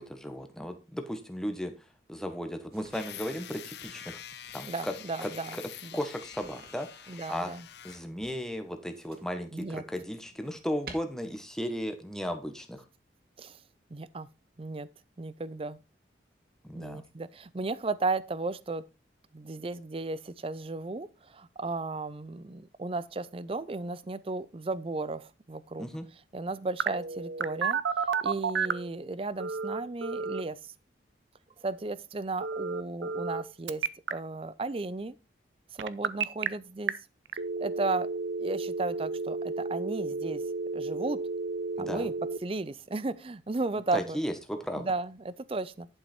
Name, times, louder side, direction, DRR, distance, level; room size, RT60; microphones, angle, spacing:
voice 1, 0.0-1.7 2.1-4.2 4.5-4.9 5.2-5.6 5.9-7.5 7.8-12.8 16.6-17.0 25.8-26.0 41.8-42.1 43.9-44.9, equal, 5° left, 1.1 m, -35 dB
sound 1, 2.7-4.7 6.1-7.4 8.2-9.4 9.9-10.9, right 4 dB, 55° right, 1.9 m, -52 dB
sound 2, 2.9-8.0, left 10 dB, 65° left, 0.7 m, -46 dB
voice 2, 4.6-6.0 7.1-7.7 9.5-9.8 13.4-13.6 13.9-14.3 14.6-14.9 15.2-15.8 16.7-18.8 19.3-25.9 26.3-27.8 28.2-30.7 31.6-33.8 34.1-35.2 35.7-36.9 37.6-38.1 38.4-40.4 40.7-41.2 41.8-42.1 42.4-44.2 44.8-45.9, right 3 dB, 30° right, 0.5 m, -34 dB
Telephone, 26.8-28.9 29.4-30.4 32.4-33.4 33.7-34.1 35.8-36.5 36.9-37.0 37.3-42.4, right 5 dB, 85° right, 0.6 m, -31 dB
11.0 x 5.7 x 4.3 m
head